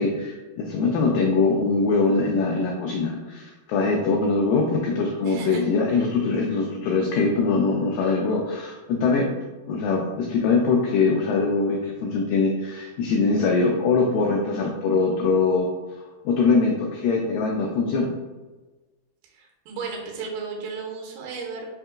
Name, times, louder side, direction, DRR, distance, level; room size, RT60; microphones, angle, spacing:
voice 1, 0.0-9.3 9.7-15.7 16.3-18.1, left 4 dB, 90° left, 0 dB, 1.9 m, -22 dB
voice 2, 5.2-5.6 5.9-6.1 19.2-21.7, right 5 dB, 85° right, 0 dB, 2.7 m, -35 dB
5.7 x 2.7 x 2.3 m, 1.2 s
omnidirectional pair, 4.5 m